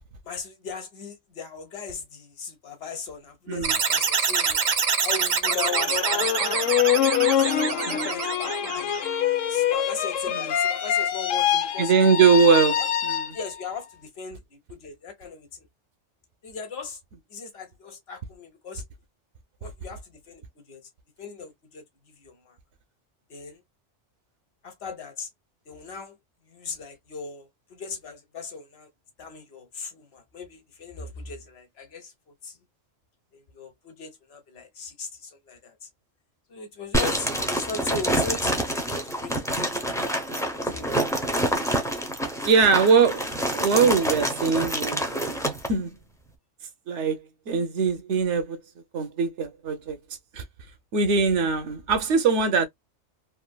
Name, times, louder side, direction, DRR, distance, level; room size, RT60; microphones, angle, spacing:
voice 1, 0.2-4.7 5.0-6.7 7.3-9.1 9.5-11.9 12.8-12.9 13.3-15.7 16.4-17.0 17.3-18.8 19.6-20.4 20.7-20.8 21.2-21.8 22.2-22.6 23.3-23.6 24.6-25.3 25.7-26.1 26.5-28.9 29.2-32.1 32.4-32.6 33.3-35.9 36.5-39.6 40.3-41.0, left 5 dB, 60° left, 1.1 m, -38 dB
sound 1, 3.6-9.1, right 5 dB, 45° right, 0.5 m, -25 dB
sound 2, 5.5-13.7, left 10 dB, 90° left, 1.0 m, -25 dB
voice 2, 11.8-13.2 42.4-45.4 45.7-45.9 46.9-48.6 48.9-50.0 50.3-50.4 50.9-52.7, right 5 dB, 70° right, 1.0 m, -22 dB
sound 3, 36.9-45.7, right 1 dB, 5° left, 0.5 m, -27 dB
3.2 x 2.6 x 2.2 m
omnidirectional pair, 1.3 m